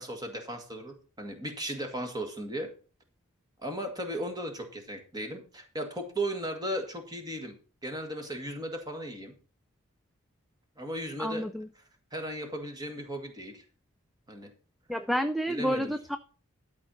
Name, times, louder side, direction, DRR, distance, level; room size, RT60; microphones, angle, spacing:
voice 1, 0.0-2.7 3.6-7.5 7.8-9.3 10.8-11.5 12.1-13.6 14.3-14.5 15.5-15.9, right 1 dB, 20° right, 4 dB, 1.9 m, -36 dB
voice 2, 11.2-11.7 14.9-16.2, equal, ahead, 9 dB, 0.4 m, -30 dB
12.5 x 4.4 x 7.0 m, 0.37 s
head